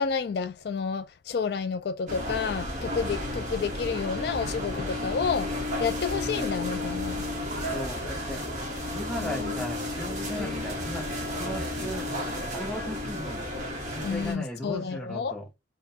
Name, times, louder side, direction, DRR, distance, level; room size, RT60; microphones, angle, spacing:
voice 1, 0.0-5.5 5.8-7.2 9.2-9.5 10.4-10.6 14.0-15.3, left 5 dB, 55° left, 0.3 m, -30 dB
sound 1, 2.1-14.3, left 1 dB, 40° right, 1.4 m, -32 dB
voice 2, 7.7-8.4 8.9-13.5 13.9-15.5, left 1 dB, 5° left, 0.8 m, -37 dB
3.4 x 2.3 x 4.2 m
head